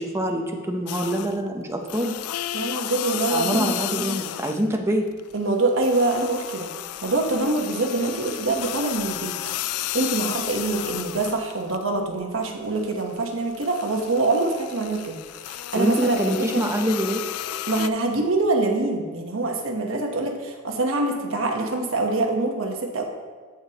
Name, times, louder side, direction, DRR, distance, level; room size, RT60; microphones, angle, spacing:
voice 1, 0.0-2.2 3.3-5.1 15.7-17.2, equal, 10° right, 2 dB, 0.7 m, -25 dB
sound 1, 0.9-1.5 1.9-4.8 5.1-11.8 12.2-17.9, left 13 dB, 85° left, 0.3 m, -33 dB
voice 2, 2.5-4.1 5.3-6.7 7.0-9.4 9.7-15.2 15.5-16.6 17.7-23.0, right 2 dB, 65° right, 2 dB, 1.1 m, -25 dB
14.5 x 4.9 x 2.9 m, 1.5 s
head